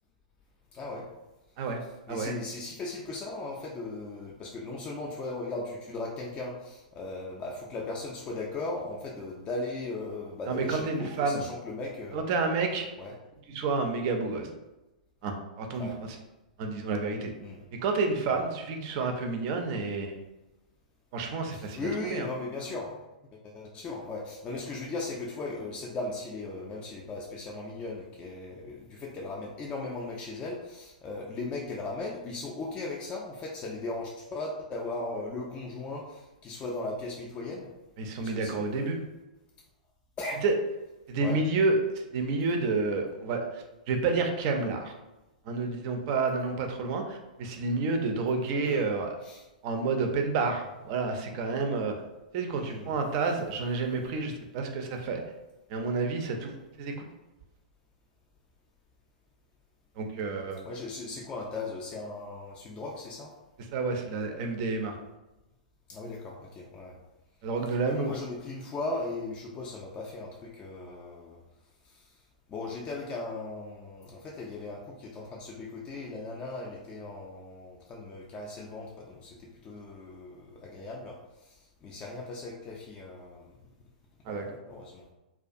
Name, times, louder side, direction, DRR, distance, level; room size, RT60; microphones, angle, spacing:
voice 1, 0.7-1.1 1.6-1.7 2.1-12.3 13.0-13.1 15.8-16.0 17.4-17.6 18.3-18.4 21.5-23.0 23.3-37.7 38.2-38.7 40.2-40.4 41.2-41.4 48.6-48.8 49.2-49.5 52.5-53.0 60.6-63.3 65.9-67.0 67.8-71.4 71.8-72.1 72.5-83.5 84.3-85.0, left 2 dB, 25° left, -2 dB, 0.3 m, -38 dB
voice 2, 10.5-11.4 12.1-12.9 13.5-14.5 15.2-15.9 16.6-17.3 17.8-20.2 21.1-22.3 38.0-39.1 40.4-40.5 41.1-41.8 42.1-43.4 43.9-44.9 45.5-49.2 49.6-51.9 52.3-55.2 55.7-57.1 60.0-60.6 63.7-65.0 67.4-68.1 84.3-84.4, right 3 dB, 40° right, 4 dB, 0.4 m, -29 dB
2.3 x 2.3 x 2.5 m, 1.0 s
figure-of-eight pair, 105°, 4 cm